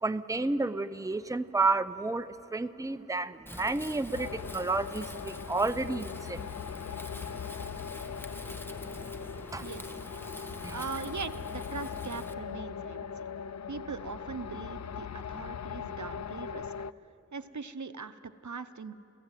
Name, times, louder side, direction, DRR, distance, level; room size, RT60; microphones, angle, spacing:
voice 1, 0.0-6.4 9.5-9.6 10.6-10.8, right 3 dB, 10° right, 11 dB, 0.6 m, -31 dB
Wind, 3.5-12.3, equal, 5° left, 1.1 m, -46 dB
sound 1, 4.1-16.9, left 7 dB, 65° left, 0.4 m, -40 dB
voice 2, 10.7-13.2 13.7-16.7 17.3-18.9, right 5 dB, 75° right, 11 dB, 0.8 m, -40 dB
29.5 x 15.5 x 9.1 m, 2.9 s
wide cardioid pair, 50°, 29 cm